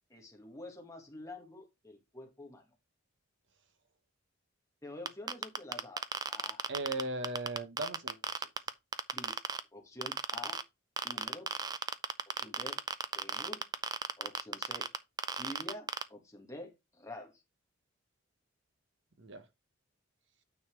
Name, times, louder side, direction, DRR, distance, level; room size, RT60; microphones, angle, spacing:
voice 1, 0.1-2.6 4.8-6.7 9.1-9.4 9.7-10.6 11.0-11.5 12.4-12.8 13.1-13.6 14.2-14.9 15.4-17.3, left 1 dB, 15° left, 1.9 m, -48 dB
sound 1, 5.1-9.6 10.0-10.6 11.0-16.0, right 5 dB, 20° right, 0.5 m, -34 dB
voice 2, 6.7-8.5 19.2-19.5, right 2 dB, 60° right, 1.1 m, -38 dB
9.2 x 4.1 x 4.6 m
head